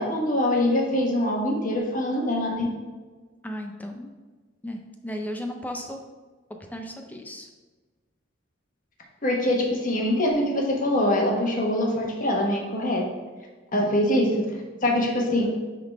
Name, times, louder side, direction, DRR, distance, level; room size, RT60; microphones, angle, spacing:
voice 1, 0.0-2.7 9.2-13.0 13.7-14.5 14.8-15.4, left 1 dB, 40° left, -1 dB, 1.3 m, -23 dB
voice 2, 3.4-4.1 4.6-6.0 6.7-7.5 13.7-13.8, equal, 10° left, 4 dB, 0.5 m, -35 dB
9.0 x 3.9 x 3.5 m, 1.3 s
head